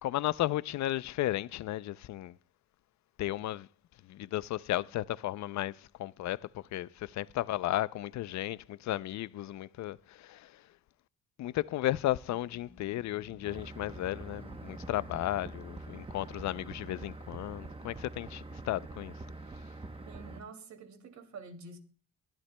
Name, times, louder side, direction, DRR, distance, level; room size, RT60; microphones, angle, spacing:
voice 1, 0.0-2.4 3.2-3.7 4.0-10.7 11.4-19.1, left 14 dB, 65° left, 0.5 m, -34 dB
sound 1, 12.0-17.6 18.1-20.0, equal, 5° left, 1.2 m, -57 dB
sound 2, 13.4-20.4, right 2 dB, 20° right, 0.9 m, -45 dB
voice 2, 20.1-21.8, right 4 dB, 65° right, 2.5 m, -48 dB
22.5 x 11.5 x 2.2 m
cardioid pair, 90°, 30 cm